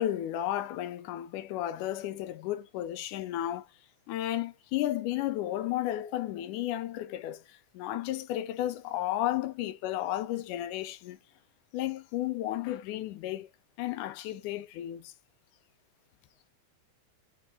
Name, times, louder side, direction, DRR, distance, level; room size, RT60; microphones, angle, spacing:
voice 1, 0.0-3.7 4.1-7.4 7.7-11.2 11.7-13.5 13.8-15.1, left 13 dB, 80° left, 2.0 m, -33 dB
5.3 x 2.2 x 3.5 m
omnidirectional pair, 3.5 m